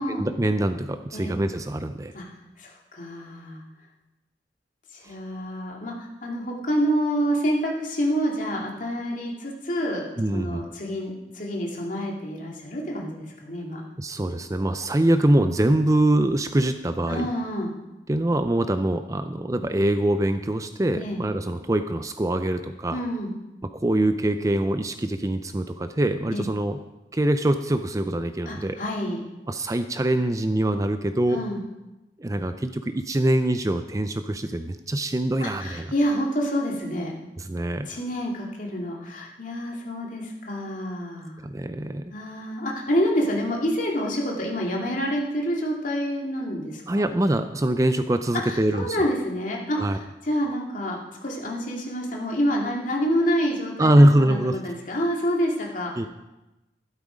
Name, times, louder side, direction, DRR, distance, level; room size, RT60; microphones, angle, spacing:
voice 1, 0.0-2.1 5.0-5.1 10.2-10.6 14.0-17.3 18.1-23.0 23.7-26.8 27.1-28.8 29.5-31.4 32.2-35.9 37.4-37.9 41.4-42.0 46.9-49.0 49.8-50.0 53.8-54.6 56.0-56.1, right 1 dB, 20° right, 9 dB, 0.5 m, -23 dB
voice 2, 2.6-3.6 4.9-10.1 10.3-13.8 17.1-17.7 20.9-21.2 22.9-23.3 26.3-26.5 28.5-29.2 31.3-31.6 35.4-37.1 37.9-41.4 42.1-47.0 48.5-56.1, equal, 45° left, -1 dB, 2.5 m, -28 dB
12.5 x 12.0 x 5.1 m, 1.0 s
head